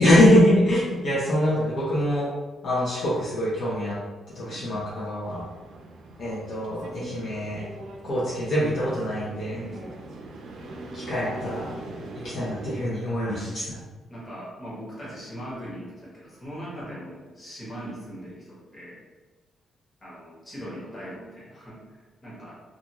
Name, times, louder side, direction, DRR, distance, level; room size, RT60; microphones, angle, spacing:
voice 1, 0.0-2.3 2.6-4.0 4.3-5.4 6.2-7.7 8.0-9.6 10.9-11.8 12.2-13.6, left 1 dB, 55° left, -8 dB, 0.7 m, -23 dB
voice 2, 4.4-4.8 9.5-10.0 13.2-13.6 14.1-19.0 20.0-22.5, equal, 25° left, -8 dB, 1.2 m, -40 dB
sound 1, 5.2-12.9, right 2 dB, 70° right, 0.4 m, -41 dB
2.5 x 2.5 x 2.9 m, 1.3 s
cardioid pair, 140°, 0 cm